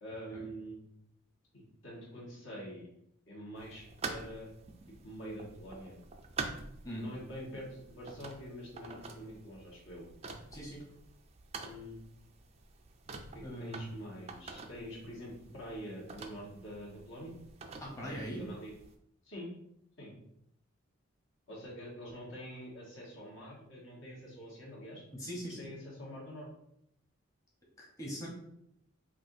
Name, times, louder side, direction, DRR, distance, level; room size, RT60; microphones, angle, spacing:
voice 1, 0.0-0.9 1.5-2.9 3.3-4.5 5.0-6.0 7.0-10.0 11.6-12.0 13.3-17.3 18.0-18.7 19.2-19.5 20.0-20.2 21.5-25.0 25.4-26.5, equal, 60° left, -4 dB, 1.5 m, -46 dB
sound 1, 3.6-18.9, right 4 dB, 30° right, 0.4 m, -47 dB
voice 2, 10.5-10.8 13.4-13.9 17.8-18.4 25.1-25.6 27.8-28.3, equal, 15° left, -5 dB, 1.0 m, -41 dB
5.6 x 2.4 x 2.7 m, 0.75 s
head